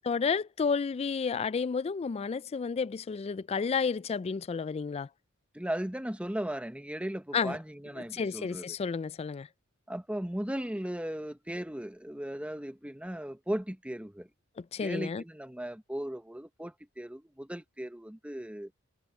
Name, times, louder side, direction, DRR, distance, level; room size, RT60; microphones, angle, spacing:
voice 1, 0.0-5.1 7.3-7.6 8.0-9.5 14.6-15.2, left 5 dB, 30° left, 0.3 m, -31 dB
voice 2, 5.5-8.7 9.9-14.3 14.8-18.7, right 1 dB, 5° right, 1.0 m, -37 dB
head